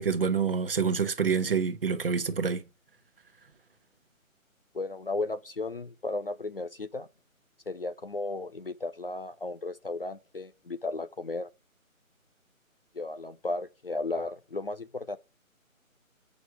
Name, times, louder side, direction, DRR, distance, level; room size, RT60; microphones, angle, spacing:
voice 1, 0.0-2.6, right 6 dB, 40° right, 1.0 m, -27 dB
voice 2, 4.7-7.1 7.7-11.5 12.9-15.2, left 2 dB, 45° left, 0.5 m, -34 dB
7.5 x 6.3 x 4.7 m
figure-of-eight pair, 160°, 41 cm